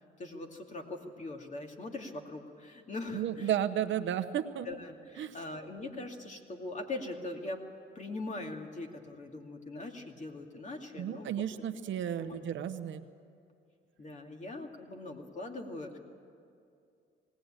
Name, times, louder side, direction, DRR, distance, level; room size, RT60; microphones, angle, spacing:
voice 1, 0.2-3.5 4.6-7.7 7.9-11.5 12.2-12.4 14.0-16.0, left 2 dB, 35° left, 2 dB, 2.5 m, -41 dB
voice 2, 3.1-4.7 5.2-5.4 11.0-13.0, right 10 dB, 70° right, 7 dB, 1.0 m, -33 dB
20.0 x 17.5 x 8.9 m, 2.4 s
cardioid pair, 90°, 20 cm